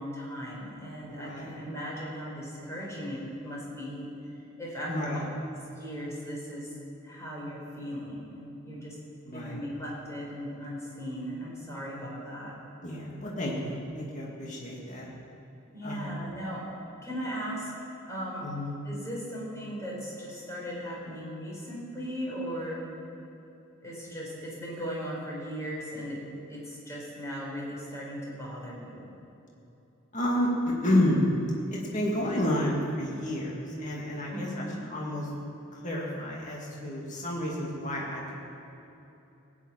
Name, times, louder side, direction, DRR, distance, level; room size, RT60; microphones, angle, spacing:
voice 1, 0.0-4.1 4.6-5.2 5.7-6.7 7.0-8.9 9.3-12.5 15.7-16.6 17.0-17.7 18.1-18.5 18.8-22.8 23.8-26.2 26.5-29.2 34.3-34.8, equal, 15° left, -5 dB, 4.4 m, -37 dB
voice 2, 1.1-1.5 4.9-5.3 9.3-9.6 12.8-15.1 15.8-16.1 18.4-18.7 30.1-30.5 30.8-31.2 31.7-35.3 35.7-38.3, left 1 dB, 40° left, -3 dB, 2.3 m, -30 dB
17.0 x 7.4 x 8.9 m, 2.9 s
head